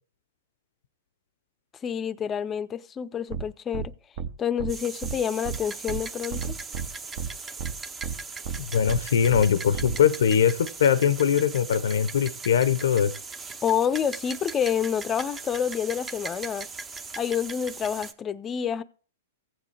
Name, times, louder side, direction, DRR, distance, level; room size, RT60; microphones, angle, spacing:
voice 1, 1.8-3.9 4.4-6.6 13.6-16.7 17.2-18.8, left 8 dB, 20° left, 0.5 m, -28 dB
sound 1, 3.3-3.4 3.7-3.9 4.2-4.3 4.6-4.7 5.0-5.1 5.4-5.6 5.9-6.0 6.3-6.9 7.2-7.3 7.6-7.7 8.0-8.1 8.4-8.6 8.9-9.0 9.3-9.4 9.7-10.0, right 7 dB, 50° right, 0.9 m, -31 dB
sound 2, 4.7-18.1, right 4 dB, 15° right, 0.7 m, -39 dB
voice 2, 8.6-13.1, left 8 dB, 75° left, 0.6 m, -22 dB
15.5 x 7.5 x 3.2 m
hypercardioid pair, 130°, 0 cm